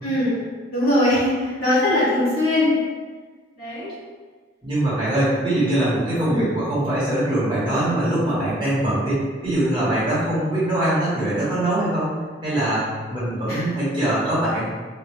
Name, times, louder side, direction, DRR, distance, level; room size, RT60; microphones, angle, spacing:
voice 1, 0.0-0.4 0.7-2.8 3.6-3.9 6.3-6.5 13.5-13.6, left 1 dB, 50° left, -12 dB, 1.3 m, -21 dB
voice 2, 4.6-12.1 12.4-14.7, right 1 dB, 25° right, -11 dB, 1.4 m, -22 dB
3.1 x 2.6 x 3.5 m, 1.5 s
head